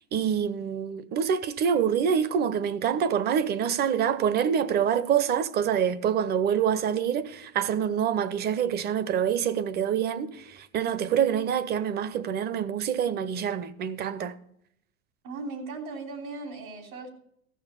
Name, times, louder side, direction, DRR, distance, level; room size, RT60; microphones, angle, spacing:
voice 1, 0.1-14.4, right 8 dB, 25° right, 0.6 m, -26 dB
voice 2, 15.2-17.1, right 3 dB, 75° right, 3.4 m, -37 dB
14.0 x 6.8 x 6.7 m
hypercardioid pair, 120°, 41 cm